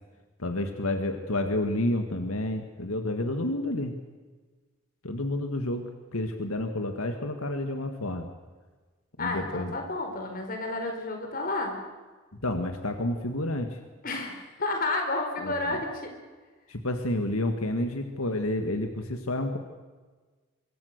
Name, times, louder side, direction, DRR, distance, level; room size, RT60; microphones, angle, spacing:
voice 1, 0.4-3.9 5.0-8.3 9.2-9.8 12.4-13.8 15.4-15.8 16.7-19.6, left 1 dB, 80° left, 6 dB, 1.8 m, -30 dB
voice 2, 9.2-11.8 14.0-16.1, left 2 dB, 40° left, 4 dB, 4.3 m, -31 dB
25.5 x 24.0 x 6.7 m, 1.3 s
head